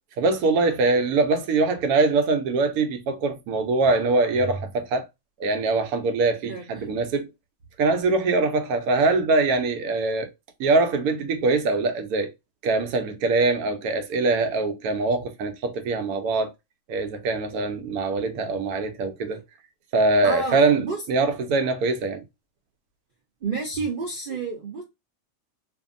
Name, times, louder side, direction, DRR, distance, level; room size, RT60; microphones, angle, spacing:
voice 1, 0.2-5.0 5.4-7.3 7.8-10.3 10.6-12.3 12.6-16.5 16.9-19.4 19.9-20.8 21.1-22.2, right 3 dB, 90° right, 1.1 m, -23 dB
voice 2, 6.5-7.0 8.6-8.7 20.2-21.0 23.4-24.8, right 4 dB, 50° right, 0.6 m, -30 dB
2.7 x 2.5 x 2.4 m
omnidirectional pair, 1.5 m